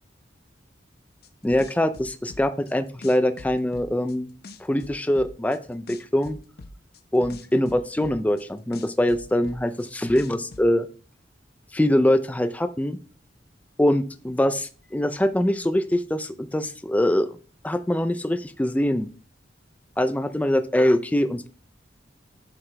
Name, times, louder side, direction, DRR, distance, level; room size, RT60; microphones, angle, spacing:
sound 1, 1.2-2.7 3.0-4.1 4.4-5.6 5.9-8.4 8.7-10.7, left 2 dB, 55° left, 0.7 m, -43 dB
voice 1, 1.4-4.3 4.6-6.4 7.1-10.9 11.7-13.0 13.8-17.3 17.6-19.1 20.0-21.5, left 1 dB, 10° left, 10 dB, 0.4 m, -23 dB
7.7 x 5.8 x 3.3 m, 0.39 s
head